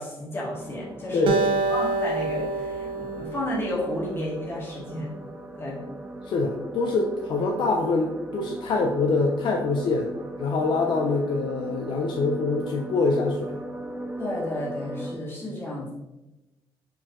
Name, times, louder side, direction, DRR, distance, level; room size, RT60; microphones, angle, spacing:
voice 1, 0.0-5.1 5.6-5.8 14.2-15.9, left 1 dB, 25° left, -6 dB, 1.5 m, -32 dB
sound 1, 0.5-15.2, right 1 dB, 15° right, 0.4 m, -39 dB
voice 2, 1.1-1.5 6.2-10.1 10.4-13.6, left 3 dB, 60° left, 1 dB, 0.5 m, -25 dB
Acoustic guitar, 1.3-4.6, right 3 dB, 70° right, 0.5 m, -28 dB
4.5 x 3.8 x 3.0 m, 1.0 s
cardioid pair, 155°, 9 cm